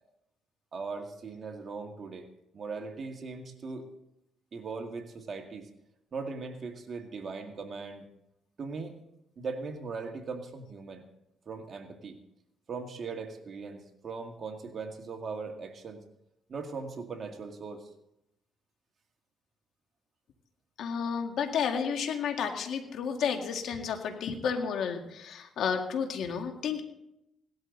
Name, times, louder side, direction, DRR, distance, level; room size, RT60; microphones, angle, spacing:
voice 1, 0.7-2.3 2.5-3.9 4.5-5.7 6.1-8.1 8.6-9.0 9.4-11.1 11.5-12.2 12.7-16.0 16.5-17.9, right 4 dB, 45° right, 3 dB, 2.0 m, -39 dB
voice 2, 20.8-26.8, left 6 dB, 75° left, 4 dB, 2.1 m, -31 dB
18.0 x 12.5 x 4.0 m, 0.83 s
cardioid pair, 90°, 0 cm